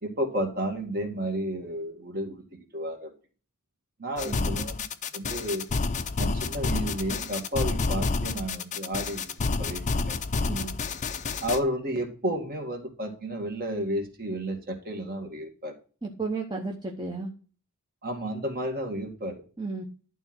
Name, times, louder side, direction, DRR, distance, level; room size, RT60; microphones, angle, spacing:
voice 1, 0.0-3.1 4.0-4.7 5.1-5.7 6.2-9.3 9.6-10.2 11.4-15.7 18.0-19.4, equal, 45° right, 4 dB, 1.9 m, -32 dB
sound 1, 4.2-11.6, left 4 dB, 35° left, 0.6 m, -29 dB
voice 2, 16.0-17.3 19.6-19.8, right 3 dB, 20° right, 0 dB, 0.9 m, -33 dB
11.5 x 3.8 x 6.0 m, 0.39 s
head